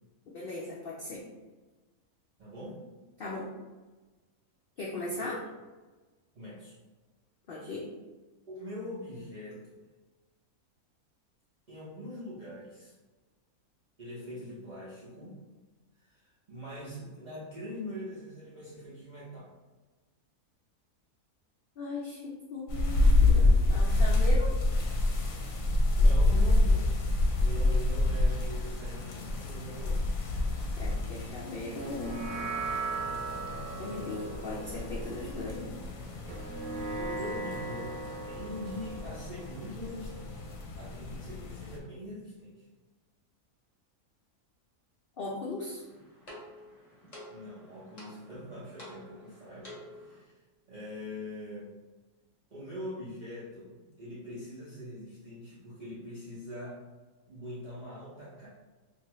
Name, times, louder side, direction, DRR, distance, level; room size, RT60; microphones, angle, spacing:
voice 1, 0.3-1.2 3.2-3.5 4.8-5.4 7.5-7.9 21.8-24.5 30.8-32.3 33.8-35.9 45.2-45.8, left 2 dB, 85° left, -4 dB, 0.5 m, -38 dB
voice 2, 2.4-2.8 5.2-5.3 6.3-6.8 8.5-9.7 11.7-12.9 14.0-15.4 16.1-19.5 26.0-26.9 27.4-30.3 37.0-40.4 40.8-42.5 47.3-50.3 50.7-51.7 52.5-56.8 57.3-58.5, equal, 65° right, -8 dB, 0.4 m, -43 dB
sound 1, 22.7-41.8, left 2 dB, 70° left, 0.9 m, -28 dB
sound 2, 31.8-40.5, right 3 dB, 80° right, 1.1 m, -39 dB
sound 3, 45.6-50.2, left 1 dB, 35° left, 0.7 m, -50 dB
2.7 x 2.6 x 3.0 m, 1.2 s
omnidirectional pair, 1.6 m